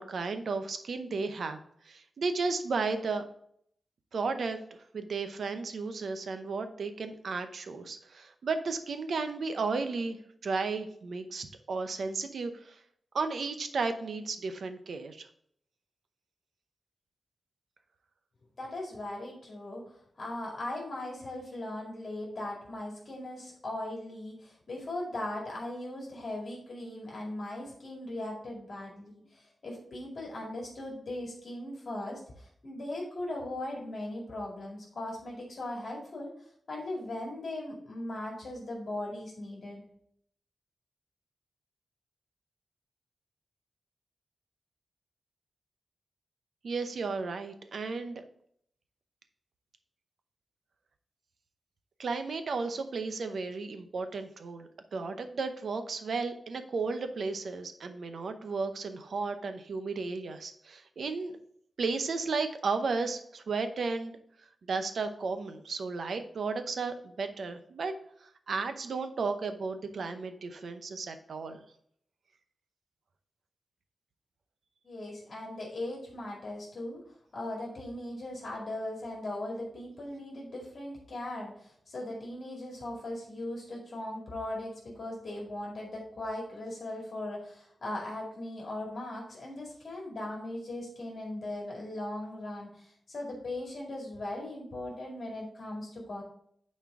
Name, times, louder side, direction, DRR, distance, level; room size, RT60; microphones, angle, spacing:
voice 1, 0.0-1.6 1.8-3.2 4.1-4.6 4.9-12.8 13.1-15.3 46.6-48.2 52.0-61.4 61.8-64.1 64.7-67.9 68.2-71.6, right 4 dB, 70° right, 8 dB, 0.7 m, -34 dB
voice 2, 18.6-19.8 20.2-36.3 36.7-39.8 74.8-77.0 77.3-96.2, left 1 dB, 50° left, -3 dB, 2.1 m, -39 dB
9.2 x 4.4 x 3.6 m, 0.66 s
wide cardioid pair, 165°, 0 cm